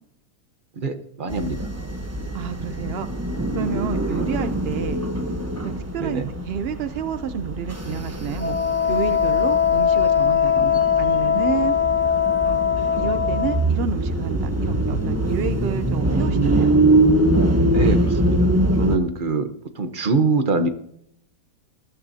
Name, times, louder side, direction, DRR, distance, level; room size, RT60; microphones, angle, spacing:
voice 1, 0.8-1.7 4.1-4.2 6.0-6.3 17.6-19.5 19.7-20.7, right 4 dB, 35° right, 8 dB, 1.0 m, -24 dB
sound 1, 1.3-19.0, right 1 dB, 15° right, 0.7 m, -23 dB
voice 2, 2.3-3.1 3.5-5.0 5.6-6.2 6.5-8.6 8.9-11.7 12.4-12.6 12.9-16.7, right 7 dB, 85° right, 10 dB, 0.5 m, -29 dB
Wind instrument woodwind instrument, 8.4-13.6, left 8 dB, 5° left, 2.3 m, -20 dB
21.0 x 13.0 x 2.8 m, 0.72 s
omnidirectional pair, 1.9 m